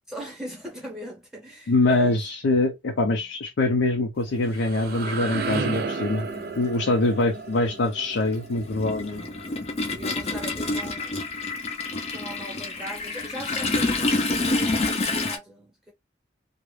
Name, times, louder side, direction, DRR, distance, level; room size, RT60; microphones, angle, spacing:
voice 1, 0.1-2.2 2.9-3.2 6.9-7.3 9.1-9.4 9.9-11.2 12.1-15.9, right 1 dB, 5° right, 0.8 m, -40 dB
voice 2, 1.7-6.3 6.6-9.2, left 2 dB, 90° left, 0.5 m, -24 dB
sound 1, 4.2-10.0, right 4 dB, 55° right, 0.4 m, -33 dB
Toilet flush, 4.9-5.0 6.2-6.4 6.7-15.4, left 2 dB, 35° left, 0.4 m, -28 dB
2.3 x 2.0 x 3.1 m
head